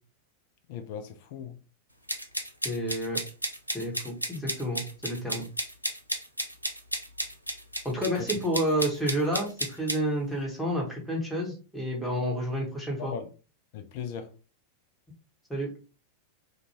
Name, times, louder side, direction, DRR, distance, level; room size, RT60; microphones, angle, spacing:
voice 1, 0.7-1.6 8.2-8.3 12.1-12.3 13.0-13.3 13.7-14.3, left 7 dB, 50° left, 0.3 m, -38 dB
sound 1, 2.1-10.0, equal, 90° right, 0.4 m, -33 dB
voice 2, 2.6-3.2 3.7-5.4 7.8-13.1 15.5-15.7, equal, ahead, 1.0 m, -30 dB
2.5 x 2.3 x 2.9 m
figure-of-eight pair, 90°, 0 cm